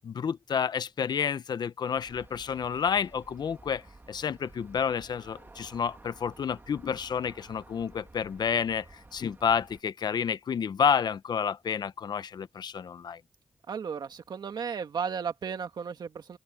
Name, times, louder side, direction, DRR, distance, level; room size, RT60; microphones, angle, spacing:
voice 1, 0.0-13.2, left 7 dB, 80° left, 0.7 m, -30 dB
Aircraft, 1.9-9.8, right 2 dB, 30° right, 2.0 m, -53 dB
voice 2, 13.7-16.4, right 6 dB, 90° right, 2.0 m, -34 dB
open air
wide cardioid pair, 85°, 7 cm